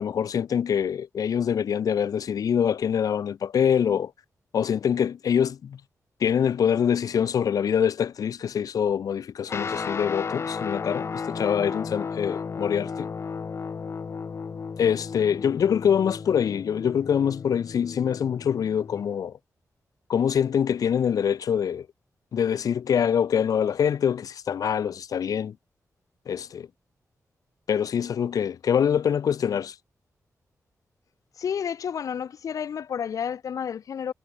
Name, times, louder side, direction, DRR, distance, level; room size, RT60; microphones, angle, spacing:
voice 1, 0.0-4.1 4.5-5.8 6.2-13.1 14.8-19.3 20.1-21.9 22.3-25.5 26.3-26.7 27.7-29.7, left 8 dB, 85° left, 1.1 m, -24 dB
Guitar, 9.5-19.1, left 5 dB, 50° left, 1.3 m, -34 dB
voice 2, 31.4-34.1, left 8 dB, 70° left, 0.6 m, -31 dB
wide cardioid pair, 135°, 6 cm